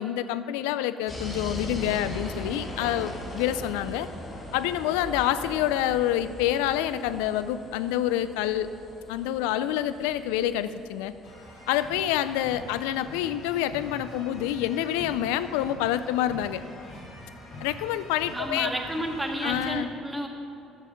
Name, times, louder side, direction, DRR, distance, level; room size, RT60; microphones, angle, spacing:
voice 1, 0.0-4.1 4.5-8.7 9.1-11.1 11.7-16.6 17.6-18.7 19.4-19.9, left 12 dB, 80° left, 13 dB, 0.4 m, -27 dB
sound 1, 1.1-11.8, left 1 dB, 30° left, 2.6 m, -39 dB
sound 2, 11.2-19.8, left 1 dB, 65° left, 2.7 m, -44 dB
voice 2, 18.3-20.3, right 1 dB, 10° right, 1 dB, 1.8 m, -31 dB
10.5 x 7.1 x 5.7 m, 2.8 s
hypercardioid pair, 65°, 0 cm